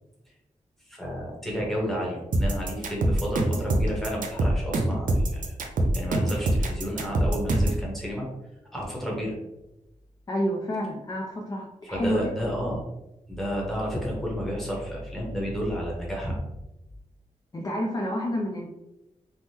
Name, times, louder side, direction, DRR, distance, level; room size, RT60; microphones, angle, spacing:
voice 1, 0.9-5.6 5.9-8.2 8.7-9.3 11.8-12.8 13.3-16.4, equal, ahead, -3 dB, 0.9 m, -31 dB
sound 1, 2.3-7.8, right 1 dB, 75° right, 0.5 m, -24 dB
voice 2, 10.3-12.2 17.5-18.7, equal, 25° left, -1 dB, 0.3 m, -29 dB
3.4 x 2.1 x 2.8 m, 0.94 s
wide cardioid pair, 125°, 14 cm